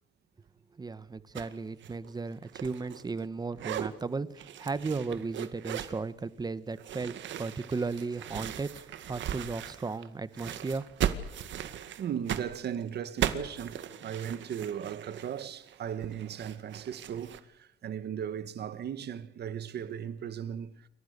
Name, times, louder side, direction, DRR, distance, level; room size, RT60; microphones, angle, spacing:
voice 1, 0.8-10.9, right 4 dB, 20° right, 1.1 m, -35 dB
sound 1, 1.4-1.5 1.8-3.3 3.5-3.9 4.4-6.0 6.8-10.1 10.3-17.4, right 10 dB, 75° right, 2.0 m, -37 dB
voice 2, 12.0-20.9, right 8 dB, 55° right, 1.5 m, -37 dB
28.5 x 24.0 x 6.7 m
cardioid pair, 145°, 20 cm